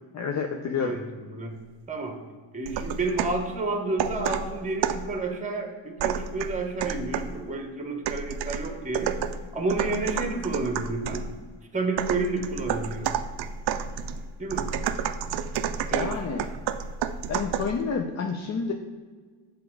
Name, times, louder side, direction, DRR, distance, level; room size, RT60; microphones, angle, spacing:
voice 1, 0.1-1.0 15.9-16.5 17.3-18.7, left 5 dB, 35° left, 2 dB, 0.5 m, -29 dB
voice 2, 0.8-1.6 1.9-2.2 2.5-9.2 9.5-11.3 11.7-13.1 14.4-14.6 15.9-16.2, right 3 dB, 15° right, 5 dB, 1.0 m, -30 dB
sound 1, 2.6-3.4 4.0-5.1 6.0-7.4 8.0-11.3 12.0-17.8, right 8 dB, 55° right, 0.5 m, -30 dB
6.0 x 3.5 x 4.6 m, 1.5 s
supercardioid pair, 60°, 48 cm